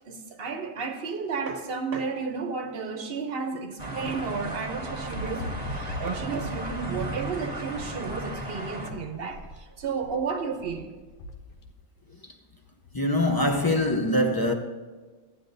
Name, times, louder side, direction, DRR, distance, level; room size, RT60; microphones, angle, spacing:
voice 1, 0.1-10.9, right 5 dB, 65° right, 0.9 m, -32 dB
sound 1, 3.8-8.9, right 2 dB, 40° right, 1.4 m, -35 dB
sound 2, 4.9-11.7, left 1 dB, 60° left, 1.0 m, -40 dB
voice 2, 12.9-14.5, left 1 dB, 25° left, 0.5 m, -23 dB
14.0 x 9.8 x 2.6 m
omnidirectional pair, 1.1 m